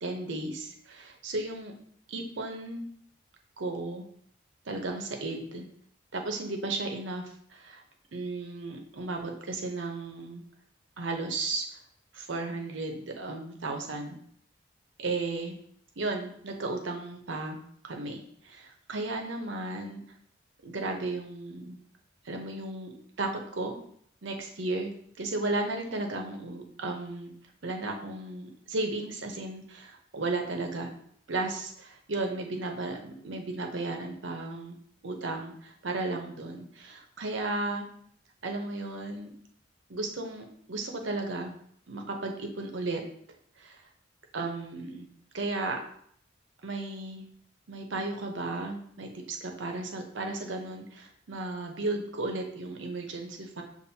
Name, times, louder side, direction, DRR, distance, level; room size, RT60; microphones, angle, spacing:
voice 1, 0.0-1.7 2.1-2.9 3.6-4.0 4.7-5.6 6.1-7.8 8.1-10.4 11.0-11.7 12.1-14.2 15.0-15.6 16.0-20.0 20.6-21.8 22.2-23.8 24.2-24.9 25.2-27.3 27.6-30.9 31.3-34.8 35.0-37.9 38.4-39.3 39.9-41.5 41.9-43.0 43.6-43.8 44.3-45.1 45.3-45.8 46.6-47.3 47.7-53.6, right 2 dB, 70° right, 3 dB, 0.7 m, -34 dB
6.8 x 2.5 x 2.8 m, 0.65 s
head